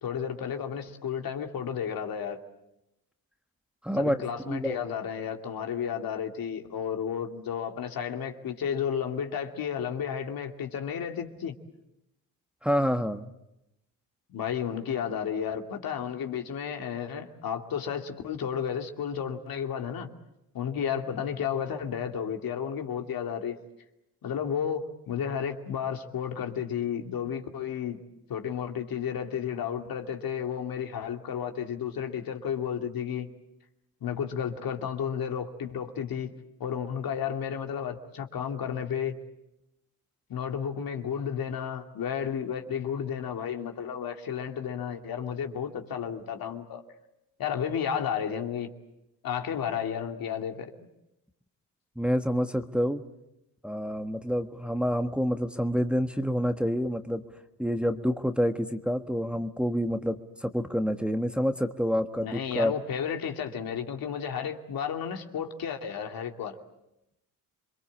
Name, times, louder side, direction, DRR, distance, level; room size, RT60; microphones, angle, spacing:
voice 1, 0.0-2.4 3.9-11.5 14.3-20.1 20.5-23.6 24.2-28.0 28.3-33.3 34.0-36.3 36.6-39.1 40.3-46.8 47.4-48.7 49.2-50.7 62.2-66.6, left 8 dB, 60° left, 2.7 m, -32 dB
voice 2, 3.8-4.8 12.6-13.3 52.0-53.0 53.6-57.2 57.6-62.7, equal, 5° right, 1.5 m, -28 dB
27.5 x 22.5 x 8.6 m
supercardioid pair, 70°, 39 cm